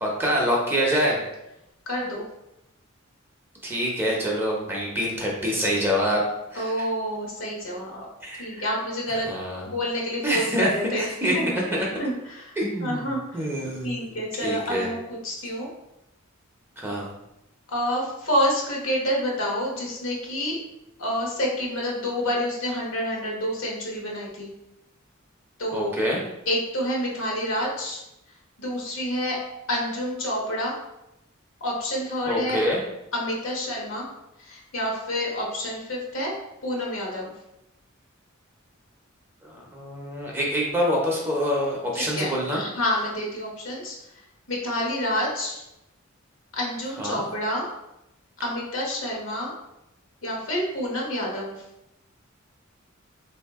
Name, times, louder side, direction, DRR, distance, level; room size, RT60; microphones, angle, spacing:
voice 1, 0.0-1.2 3.6-6.2 6.5-6.6 8.2-8.6 9.1-9.7 10.2-11.3 11.7-11.9 12.6-13.0 13.3-14.1 14.4-14.9 16.8-17.1 25.7-26.2 32.3-32.8 39.4-42.6 47.0-47.2, equal, 10° right, -3 dB, 0.7 m, -26 dB
voice 2, 1.9-2.2 6.5-8.1 8.4-9.3 9.6-11.7 12.0-12.5 12.8-13.5 13.8-15.7 17.7-20.6 21.0-24.5 25.6-26.0 26.5-28.0 28.6-29.4 29.7-30.7 31.6-32.6 33.1-34.1 34.4-36.3 36.6-37.3 41.9-44.0 44.5-45.6 46.5-47.7 48.4-49.5 50.2-51.6, equal, 70° left, -2 dB, 1.1 m, -28 dB
3.8 x 2.7 x 3.5 m, 0.88 s
head